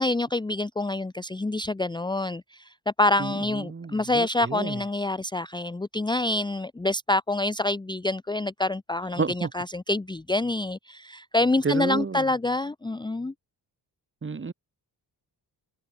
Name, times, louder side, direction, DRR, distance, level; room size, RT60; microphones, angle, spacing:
voice 1, 0.0-13.3, left 2 dB, 10° left, 0.8 m, -27 dB
voice 2, 3.2-4.8 9.2-9.5 11.6-12.3 14.2-14.5, right 4 dB, 30° right, 2.6 m, -30 dB
wide cardioid pair, 170°, 42 cm